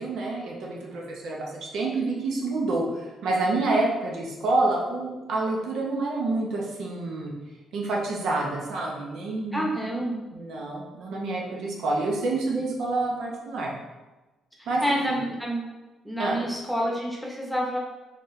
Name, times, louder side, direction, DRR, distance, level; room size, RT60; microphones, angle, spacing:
voice 1, 0.0-7.3 7.7-9.7 10.3-13.7 14.7-15.0 16.2-16.4, right 2 dB, 75° right, -2 dB, 0.9 m, -28 dB
voice 2, 9.5-10.2 14.6-15.7 16.0-17.8, equal, ahead, -2 dB, 1.0 m, -28 dB
4.2 x 3.0 x 3.2 m, 1.1 s
cardioid pair, 90°, 0 cm